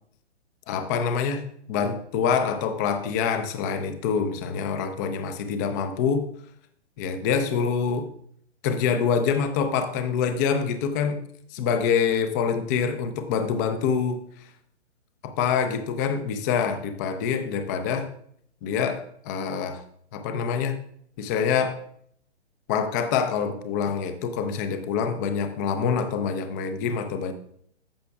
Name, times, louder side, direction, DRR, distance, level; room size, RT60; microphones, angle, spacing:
voice 1, 0.7-6.2 7.0-8.1 8.6-11.2 11.5-14.2 15.2-18.1 18.6-19.8 20.1-20.8 21.2-21.8 22.7-27.3, left 6 dB, 15° left, 9 dB, 0.4 m, -26 dB
14.0 x 5.8 x 2.3 m, 0.66 s
hypercardioid pair, 130°, 35 cm